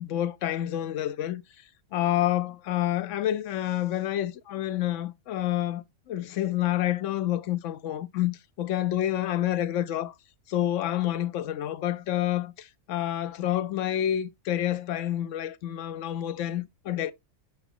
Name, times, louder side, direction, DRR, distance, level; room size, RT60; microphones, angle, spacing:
voice 1, 0.0-1.4 1.9-10.1 10.5-17.1, left 12 dB, 70° left, 0.9 m, -28 dB
7.0 x 4.5 x 3.7 m
omnidirectional pair, 1.4 m